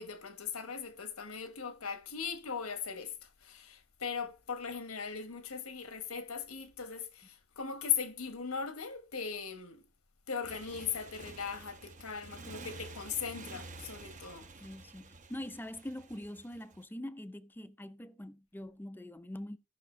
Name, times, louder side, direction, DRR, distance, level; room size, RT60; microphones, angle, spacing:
voice 1, 0.0-3.1 3.4-7.2 7.6-9.8 10.3-14.5, left 6 dB, 85° left, 1.3 m, -38 dB
Motorcycle, 10.4-16.8, right 3 dB, 35° right, 0.9 m, -50 dB
voice 2, 14.6-19.6, left 1 dB, 10° left, 0.5 m, -44 dB
16.0 x 5.8 x 3.3 m
head